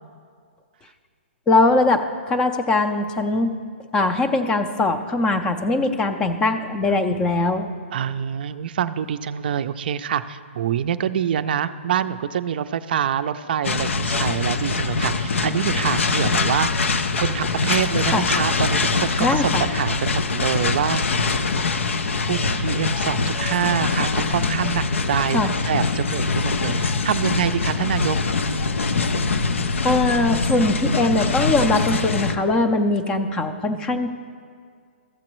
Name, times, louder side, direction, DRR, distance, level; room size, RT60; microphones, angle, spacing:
voice 1, 1.5-3.5 3.9-7.7 18.1-18.3 19.2-19.7 25.3-25.5 29.8-34.1, left 2 dB, 10° left, 8 dB, 0.4 m, -21 dB
voice 2, 7.9-21.0 22.3-28.2, right 9 dB, 50° right, 11 dB, 0.4 m, -25 dB
sound 1, 13.6-32.4, left 4 dB, 90° left, 0.5 m, -23 dB
14.5 x 7.5 x 3.1 m, 2.1 s
hypercardioid pair, 160°, 7 cm